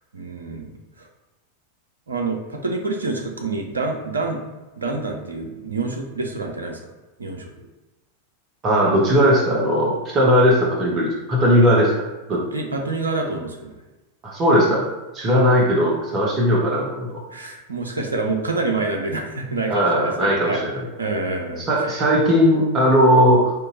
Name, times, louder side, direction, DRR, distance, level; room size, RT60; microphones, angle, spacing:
voice 1, 0.1-1.1 2.1-4.4 4.8-6.8 7.2-7.5 12.5-13.8 17.3-20.6 21.0-22.0, right 3 dB, 75° right, 2 dB, 0.6 m, -27 dB
voice 2, 8.6-11.9 12.3-12.4 14.2-14.9 15.1-17.1 19.7-20.8 21.6-23.5, equal, 30° right, -3 dB, 0.9 m, -18 dB
4.5 x 2.6 x 2.5 m, 1.1 s
figure-of-eight pair, 90°, 0 cm